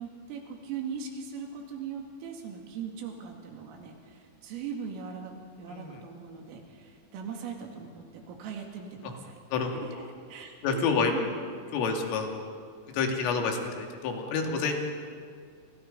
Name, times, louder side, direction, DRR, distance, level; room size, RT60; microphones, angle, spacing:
voice 1, 0.0-9.7 10.3-11.4, right 6 dB, 85° right, 2 dB, 5.0 m, -40 dB
voice 2, 5.7-6.0 9.5-9.9 10.6-11.1 11.7-12.5 12.9-14.8, left 5 dB, 80° left, 2 dB, 5.0 m, -28 dB
29.0 x 29.0 x 5.4 m, 2.2 s
omnidirectional pair, 5.7 m